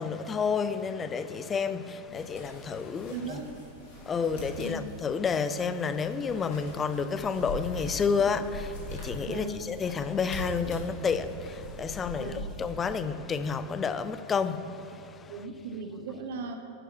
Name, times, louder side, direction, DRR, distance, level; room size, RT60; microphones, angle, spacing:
voice 1, 0.0-3.4 4.0-15.3, left 5 dB, 20° left, 0.3 m, -30 dB
sound 1, 2.1-12.9, equal, 60° left, 2.0 m, -42 dB
voice 2, 3.1-3.5 4.6-4.8 9.2-9.7 12.1-12.5 15.3-16.6, right 4 dB, 55° right, 0.6 m, -37 dB
11.0 x 4.6 x 4.6 m
figure-of-eight pair, 90°, 0 cm